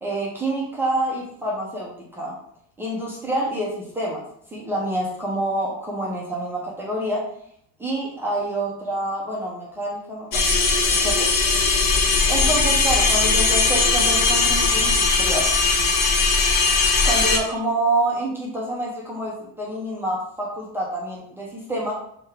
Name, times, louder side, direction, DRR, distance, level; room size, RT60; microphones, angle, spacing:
voice 1, 0.0-2.3 2.8-4.2 4.5-7.2 7.8-10.5 11.0-11.3 12.3-15.5 17.0-21.9, right 1 dB, 5° right, -5 dB, 0.3 m, -27 dB
sound 1, 10.3-17.4, left 4 dB, 40° left, 0.7 m, -19 dB
3.1 x 2.8 x 4.5 m, 0.68 s
cardioid pair, 175°, 37 cm